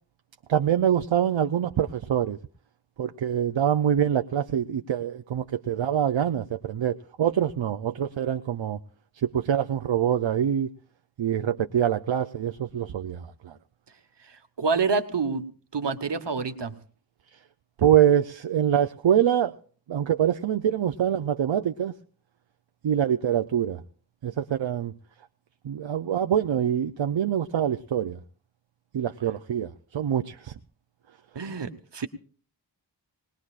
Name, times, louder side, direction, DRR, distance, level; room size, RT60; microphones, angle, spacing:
voice 1, 0.5-2.4 3.0-8.8 9.2-10.7 11.2-13.5 17.8-19.6 19.9-21.9 22.8-23.8 24.2-24.9 25.6-28.2 28.9-30.5, right 9 dB, 85° right, 0.6 m, -25 dB
voice 2, 14.6-15.4 15.7-16.7 31.3-32.1, right 4 dB, 70° right, 1.2 m, -27 dB
20.5 x 20.0 x 2.4 m
wide cardioid pair, 55°, 44 cm